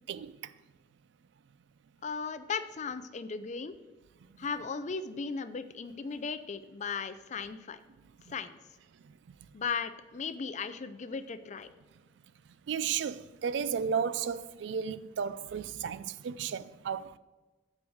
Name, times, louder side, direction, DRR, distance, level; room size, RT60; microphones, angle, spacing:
voice 1, 0.1-0.5 9.0-9.1 12.7-17.2, right 7 dB, 70° right, 0.3 m, -34 dB
voice 2, 2.0-3.8 4.4-7.8 8.3-8.6 9.5-11.7, left 5 dB, 40° left, 0.4 m, -36 dB
8.4 x 4.7 x 6.3 m
head